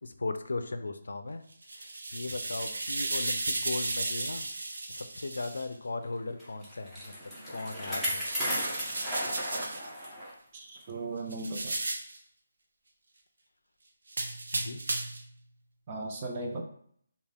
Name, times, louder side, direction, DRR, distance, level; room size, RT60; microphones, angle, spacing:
voice 1, 0.0-1.4 1.7-4.5 4.9-8.2 14.5-14.8, left 3 dB, 80° left, 8 dB, 0.4 m, -37 dB
sound 1, 1.5-5.7 8.0-9.9 11.3-12.2 14.1-15.3, right 2 dB, 75° right, 0.6 m, -34 dB
Bicycle, 6.4-10.3 10.8-10.9 11.7-11.8, equal, 5° right, 0.9 m, -35 dB
voice 2, 10.5-11.8 15.9-16.6, right 2 dB, 30° right, 1 dB, 0.4 m, -37 dB
3.4 x 2.4 x 3.5 m, 0.64 s
hypercardioid pair, 165°, 0 cm